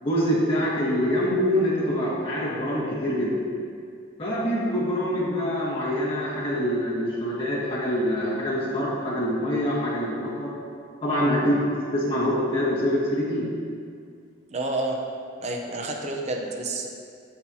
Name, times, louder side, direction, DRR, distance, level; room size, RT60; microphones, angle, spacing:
voice 1, 0.0-3.4 4.2-10.5 11.0-11.6 11.9-13.5, equal, 30° left, -8 dB, 1.7 m, -25 dB
voice 2, 14.5-15.0 15.4-16.9, right 2 dB, 35° right, 1 dB, 0.6 m, -29 dB
12.5 x 4.3 x 2.7 m, 2.3 s
head